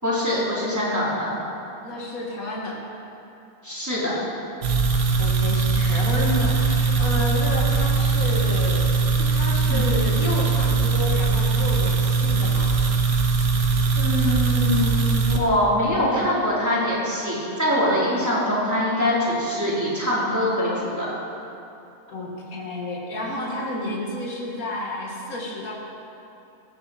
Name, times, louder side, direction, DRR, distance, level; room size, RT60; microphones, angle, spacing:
voice 1, 0.0-1.4 3.6-4.2 9.7-9.9 14.0-21.1, left 1 dB, 10° right, -8 dB, 3.7 m, -23 dB
voice 2, 1.8-2.8 5.2-9.0 9.3-12.7 22.1-25.7, left 1 dB, 80° left, -3 dB, 2.5 m, -30 dB
sound 1, 4.6-15.4, right 4 dB, 85° right, 1.6 m, -21 dB
15.5 x 14.5 x 4.3 m, 2.7 s
omnidirectional pair, 1.5 m